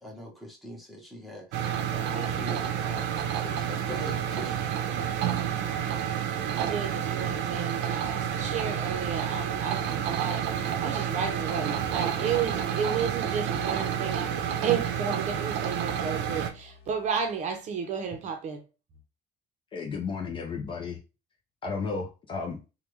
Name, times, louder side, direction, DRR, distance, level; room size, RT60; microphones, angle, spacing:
voice 1, 0.0-4.6, right 1 dB, ahead, 0.9 m, -42 dB
sound 1, 1.5-16.5, right 9 dB, 80° right, 0.6 m, -29 dB
voice 2, 6.6-18.6, right 7 dB, 40° right, 0.7 m, -32 dB
sound 2, 8.1-17.6, left 6 dB, 60° left, 1.1 m, -48 dB
voice 3, 19.7-21.0 21.6-22.6, left 5 dB, 30° left, 0.5 m, -33 dB
3.3 x 2.2 x 3.0 m
cardioid pair, 160°, 18 cm